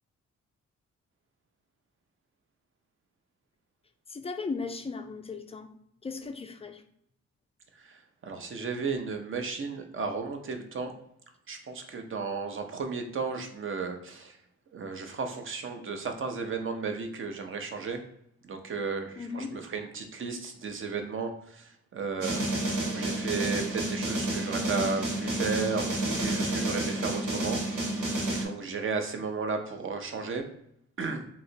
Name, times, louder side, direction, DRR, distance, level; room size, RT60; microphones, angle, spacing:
voice 1, 4.1-5.7 6.0-6.8 19.2-19.5, left 4 dB, 20° left, 7 dB, 0.3 m, -36 dB
voice 2, 8.2-10.9 11.5-14.4 14.7-18.0 18.4-22.4 22.8-27.6 28.0-30.4 31.0-31.2, right 4 dB, 40° right, 5 dB, 0.6 m, -34 dB
sound 1, 22.2-28.5, right 1 dB, 85° right, 1.4 m, -30 dB
3.1 x 2.9 x 2.7 m, 0.73 s
cardioid pair, 95°, 30 cm